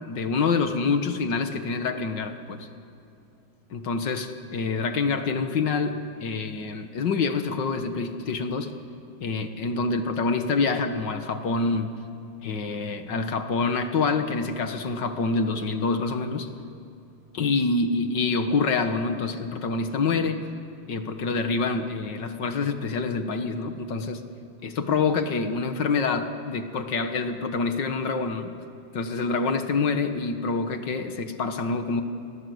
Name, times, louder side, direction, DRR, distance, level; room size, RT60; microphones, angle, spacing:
voice 1, 0.0-2.7 3.7-8.7 9.2-11.9 12.4-16.5 17.3-20.4 20.9-24.2 24.6-28.5 28.9-32.0, left 4 dB, 60° left, 7 dB, 2.0 m, -26 dB
29.0 x 21.0 x 8.0 m, 2.7 s
omnidirectional pair, 2.2 m